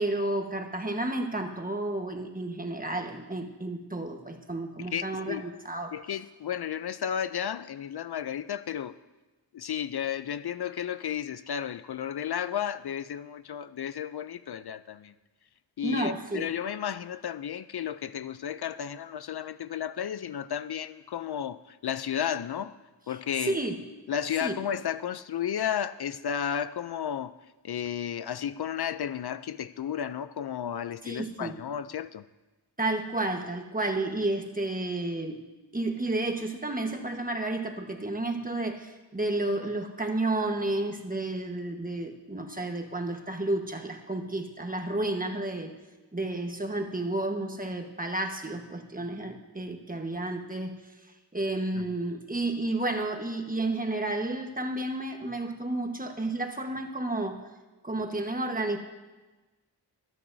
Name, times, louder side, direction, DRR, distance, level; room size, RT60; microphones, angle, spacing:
voice 1, 0.0-5.9 15.8-16.5 23.4-23.8 24.4-24.5 31.0-31.5 32.8-35.4 35.7-45.8 46.1-50.8 51.3-57.4 57.8-58.8, right 2 dB, 20° right, 4 dB, 1.3 m, -31 dB
voice 2, 4.9-5.4 5.9-8.9 9.5-15.1 15.8-22.7 23.1-23.6 24.1-27.3 27.6-32.2 51.7-51.8, left 9 dB, 65° left, 14 dB, 0.5 m, -33 dB
25.5 x 8.6 x 2.7 m, 1.2 s
wide cardioid pair, 65°, 43 cm